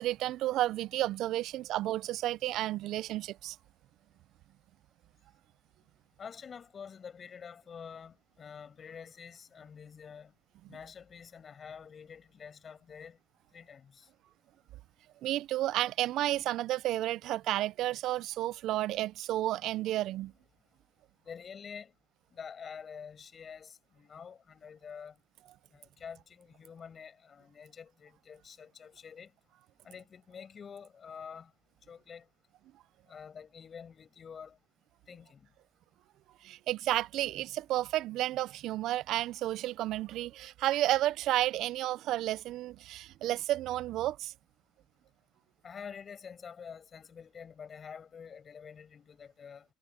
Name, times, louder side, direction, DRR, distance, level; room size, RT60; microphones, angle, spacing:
voice 1, 0.0-3.6 15.2-20.3 36.4-44.3, right 14 dB, 70° right, 0.4 m, -31 dB
voice 2, 6.2-10.3 10.7-13.2 13.5-14.1 21.2-21.9 22.3-25.2 25.7-29.3 29.8-31.5 31.9-32.3 33.1-34.6 35.1-35.5 45.6-49.7, left 6 dB, 35° left, 6.9 m, -47 dB
cardioid pair, 125°, 0 cm